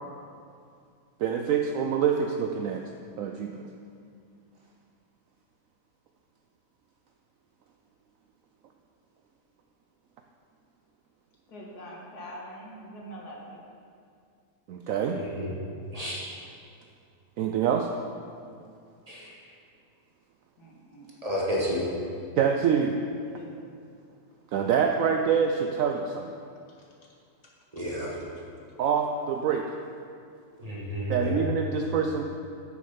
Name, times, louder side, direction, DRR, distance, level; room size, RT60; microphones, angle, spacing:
voice 1, 1.2-2.8 3.2-3.7 14.7-15.2 17.4-17.9 22.4-23.0 24.5-26.3 28.8-29.7 31.1-32.2, right 7 dB, 70° right, 3 dB, 0.8 m, -26 dB
voice 2, 11.5-13.6 20.6-21.1 23.3-23.8, equal, 70° left, -3 dB, 2.0 m, -44 dB
voice 3, 15.1-15.5 15.9-16.3 19.1-19.3 21.2-21.8 27.7-28.1 30.6-31.4, equal, 25° right, -6 dB, 1.6 m, -31 dB
8.5 x 6.5 x 5.7 m, 2.4 s
omnidirectional pair, 1.8 m